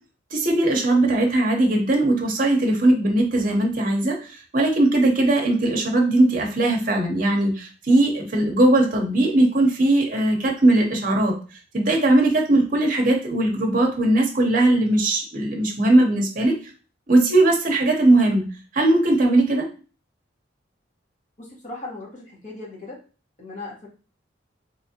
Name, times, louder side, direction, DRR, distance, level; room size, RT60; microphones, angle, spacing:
voice 1, 0.3-11.3 11.7-16.6 17.1-19.7, right 2 dB, 45° right, 1 dB, 0.8 m, -19 dB
voice 2, 21.4-23.0 23.4-23.9, left 2 dB, 40° left, -5 dB, 1.7 m, -37 dB
3.4 x 3.1 x 2.8 m, 0.36 s
head